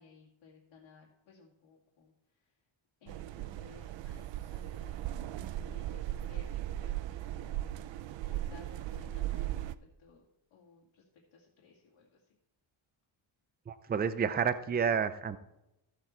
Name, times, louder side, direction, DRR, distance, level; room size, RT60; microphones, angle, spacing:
voice 1, 0.0-2.6 3.0-10.3 10.5-12.3, left 4 dB, 75° left, -4 dB, 2.4 m, -58 dB
sound 1, 3.1-9.8, right 13 dB, 65° right, 0.6 m, -37 dB
voice 2, 13.7-15.4, right 7 dB, 20° right, 12 dB, 0.4 m, -30 dB
14.0 x 8.0 x 4.4 m, 0.87 s
wide cardioid pair, 175°, 48 cm